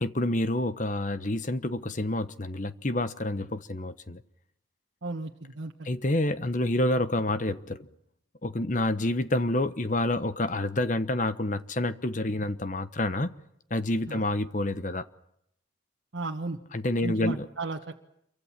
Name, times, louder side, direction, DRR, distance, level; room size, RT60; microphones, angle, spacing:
voice 1, 0.0-4.2 5.8-7.9 8.4-13.3 13.7-15.0 16.7-17.5, left 1 dB, 40° left, 1.1 m, -28 dB
voice 2, 5.0-5.9 14.1-14.2 16.1-16.6 17.0-18.0, right 3 dB, 75° right, 1.5 m, -35 dB
28.5 x 24.0 x 7.4 m
head